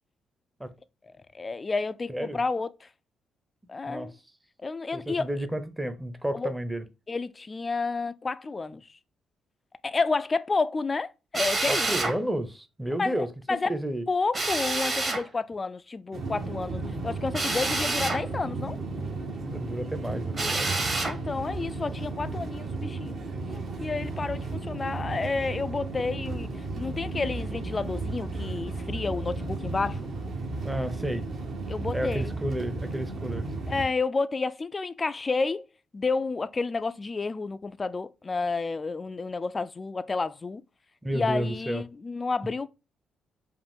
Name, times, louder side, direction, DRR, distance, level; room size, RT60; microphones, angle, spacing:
voice 1, 1.3-2.9 3.7-4.1 4.6-5.3 6.3-6.5 7.1-8.9 9.8-11.9 13.0-13.7 14.1-18.8 21.0-23.2 23.8-26.5 26.8-30.0 31.7-32.3 33.7-35.7 35.9-40.6 41.1-42.7, left 4 dB, 30° left, 0.4 m, -30 dB
voice 2, 4.9-6.8 11.7-13.3 13.7-14.0 19.5-20.8 30.6-31.3 31.9-33.5 41.0-41.8, right 1 dB, 10° right, 0.7 m, -31 dB
Drill, 11.3-12.2 14.3-15.2 17.3-18.2 20.3-21.2, right 2 dB, 35° right, 1.3 m, -28 dB
sound 1, 16.1-33.9, right 3 dB, 60° right, 1.5 m, -34 dB
5.1 x 2.5 x 3.6 m
cardioid pair, 90°, 0 cm